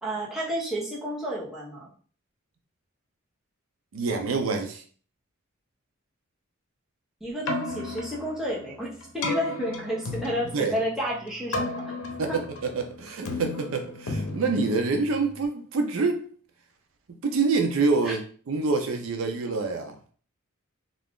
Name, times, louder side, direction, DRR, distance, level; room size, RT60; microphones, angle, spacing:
voice 1, 0.0-1.9 7.2-12.0 12.3-12.4 18.0-18.2, equal, ahead, -6 dB, 0.7 m, -31 dB
voice 2, 3.9-4.8 10.5-10.7 12.2-12.4 12.7-16.2 17.2-18.2 18.5-20.1, right 4 dB, 70° right, 5 dB, 0.5 m, -26 dB
Keyboard (musical), 7.3-15.5, left 2 dB, 90° left, 0.6 m, -35 dB
2.4 x 2.3 x 3.5 m, 0.43 s
head